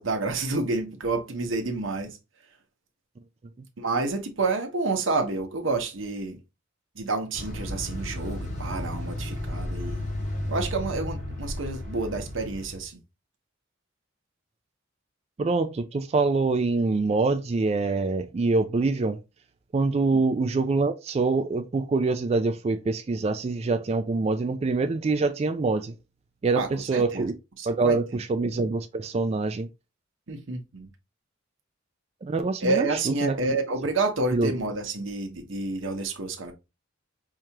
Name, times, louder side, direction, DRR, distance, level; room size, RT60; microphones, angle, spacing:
voice 1, 0.0-2.2 3.8-6.4 6.9-10.0 10.5-13.0 26.5-27.3 27.6-28.0 30.3-30.9 32.6-36.5, right 3 dB, 75° right, 0.8 m, -29 dB
sound 1, 7.3-12.9, left 1 dB, 40° left, 1.4 m, -33 dB
voice 2, 15.4-19.2 19.7-25.9 26.4-27.3 27.7-29.7 32.2-33.4 34.3-34.5, right 3 dB, 30° right, 0.3 m, -25 dB
4.6 x 2.4 x 2.8 m
head